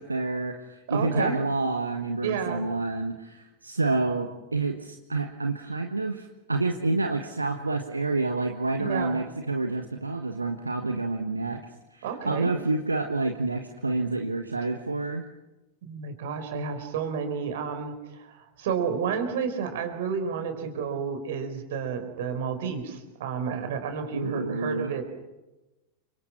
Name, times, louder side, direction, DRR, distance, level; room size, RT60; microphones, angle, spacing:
voice 1, 0.0-11.6 11.9-15.2 24.1-24.9, right 3 dB, 80° right, 5 dB, 1.5 m, -28 dB
voice 2, 0.9-1.4 2.2-2.6 8.8-9.2 12.0-12.5 15.8-25.0, right 6 dB, 55° right, 7 dB, 4.6 m, -31 dB
29.5 x 25.5 x 6.0 m, 1.0 s
figure-of-eight pair, 90°, 0 cm